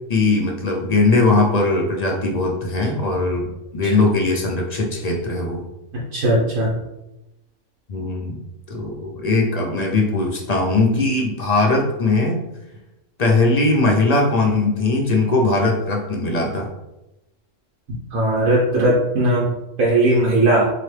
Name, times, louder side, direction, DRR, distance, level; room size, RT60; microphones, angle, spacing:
voice 1, 0.1-5.6 7.9-8.4 8.7-12.4 13.2-16.7, left 2 dB, 50° left, 0 dB, 0.5 m, -20 dB
voice 2, 6.1-6.7 18.1-19.5 19.8-20.7, right 1 dB, 80° right, -6 dB, 1.2 m, -17 dB
4.0 x 3.0 x 3.2 m, 0.95 s
omnidirectional pair, 1.4 m